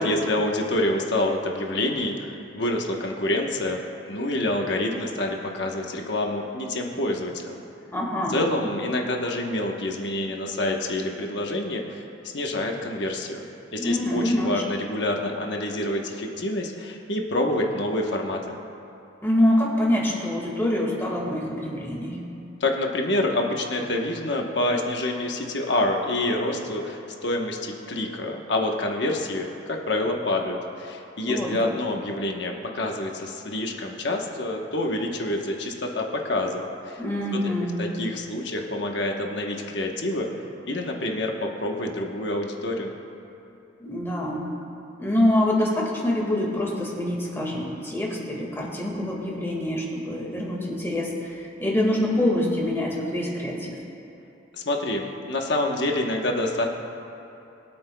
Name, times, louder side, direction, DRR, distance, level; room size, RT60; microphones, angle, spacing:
voice 1, 0.0-7.6 8.3-12.0 12.3-13.4 13.7-18.6 22.6-37.0 37.8-40.3 40.7-42.9 54.5-56.7, left 1 dB, 65° left, 1 dB, 1.1 m, -27 dB
voice 2, 7.9-8.4 13.8-14.7 19.2-22.2 31.2-31.5 37.0-37.8 43.8-44.5 45.0-53.7, left 1 dB, 15° left, -3 dB, 1.8 m, -25 dB
22.5 x 8.7 x 2.3 m, 2.8 s
head